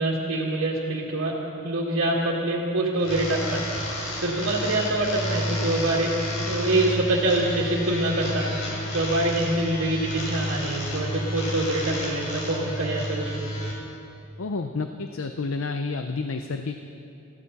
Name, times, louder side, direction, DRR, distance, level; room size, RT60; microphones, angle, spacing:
voice 1, 0.0-1.4 1.6-6.1 6.4-13.5, right 2 dB, 65° right, -5 dB, 2.2 m, -25 dB
sound 1, 3.0-13.7, left 1 dB, 85° left, 4.1 m, -31 dB
voice 2, 14.4-16.8, left 3 dB, 65° left, 7 dB, 0.6 m, -30 dB
23.0 x 15.0 x 4.2 m, 2.7 s
head